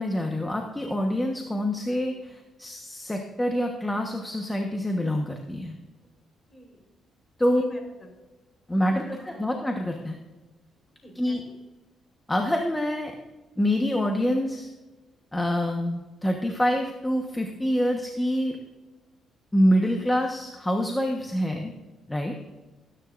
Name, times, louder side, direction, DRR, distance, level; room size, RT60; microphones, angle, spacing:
voice 1, 0.0-5.8 7.4-7.6 8.7-10.2 11.1-11.4 12.3-13.1 13.6-14.7 15.3-18.6 19.5-21.7 22.1-22.3, equal, 10° left, 2 dB, 1.2 m, -26 dB
voice 2, 6.5-6.8 7.5-8.1 8.9-9.5 11.0-11.4, right 1 dB, 30° left, 3 dB, 4.3 m, -45 dB
19.0 x 10.0 x 2.6 m, 1.2 s
cardioid pair, 90°, 0 cm